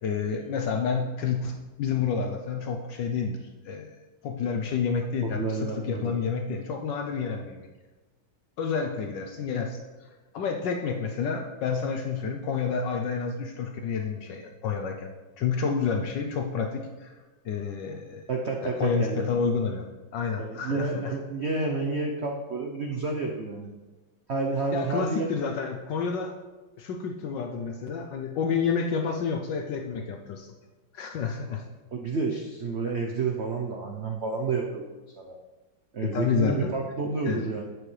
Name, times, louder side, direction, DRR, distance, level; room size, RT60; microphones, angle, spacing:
voice 1, 0.0-3.9 4.2-7.7 8.6-9.8 10.3-15.1 15.4-17.2 17.4-18.2 18.6-19.9 20.1-21.1 24.7-26.3 26.8-30.5 30.9-31.6 36.0-36.7 37.2-37.4, left 6 dB, 70° left, 3 dB, 1.2 m, -29 dB
voice 2, 5.2-6.1 18.3-19.3 20.4-23.7 24.3-25.3 31.9-35.4 35.9-37.6, right 4 dB, 90° right, 1 dB, 0.5 m, -30 dB
10.5 x 8.1 x 3.2 m, 1.2 s
omnidirectional pair, 2.2 m